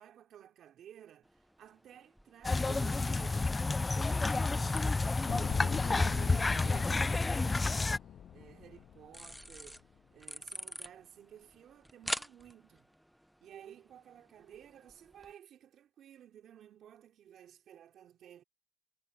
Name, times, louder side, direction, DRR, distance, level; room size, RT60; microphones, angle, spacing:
voice 1, 0.0-3.5 3.8-8.0 8.3-9.8 10.1-12.9 13.4-18.4, right 10 dB, 70° right, 3.3 m, -54 dB
sound 1, 1.2-15.3, equal, ahead, 0.9 m, -48 dB
sound 2, 2.4-8.0, left 3 dB, 25° left, 0.4 m, -30 dB
sound 3, 5.3-9.5 9.8-9.9, left 9 dB, 65° left, 0.7 m, -43 dB
cardioid pair, 90°, 0 cm